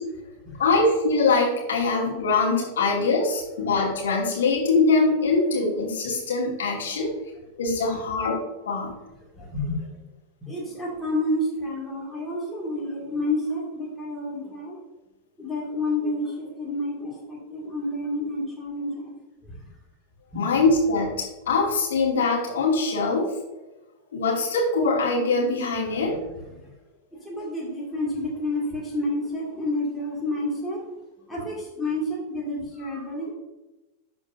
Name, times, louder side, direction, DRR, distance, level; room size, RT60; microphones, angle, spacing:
voice 1, 0.6-7.1 7.6-8.3 8.7-8.9 20.3-23.3 24.1-26.2, left 3 dB, 65° left, -3 dB, 2.4 m, -23 dB
voice 2, 9.3-9.9 10.4-14.8 15.4-19.1 19.4-19.6 20.3-20.5 26.2-26.3 26.5-26.7 27.2-30.9 31.3-33.3, left 1 dB, 5° left, -6 dB, 2.1 m, -29 dB
12.0 x 4.3 x 2.6 m, 1.1 s
figure-of-eight pair, 90°, 0 cm